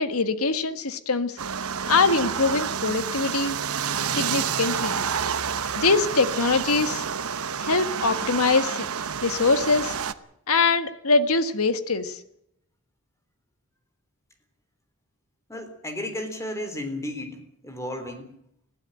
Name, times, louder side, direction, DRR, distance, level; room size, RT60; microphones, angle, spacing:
voice 1, 0.0-1.4 1.9-3.5 4.1-5.0 5.7-7.0 7.6-8.9 9.2-10.0 10.5-12.2, left 4 dB, 75° left, 10 dB, 1.6 m, -23 dB
sound 1, 1.4-10.1, right 7 dB, 80° right, 1.0 m, -29 dB
voice 2, 15.5-17.4 17.6-18.3, left 1 dB, 15° left, 7 dB, 3.5 m, -33 dB
20.5 x 15.0 x 9.1 m, 0.75 s
head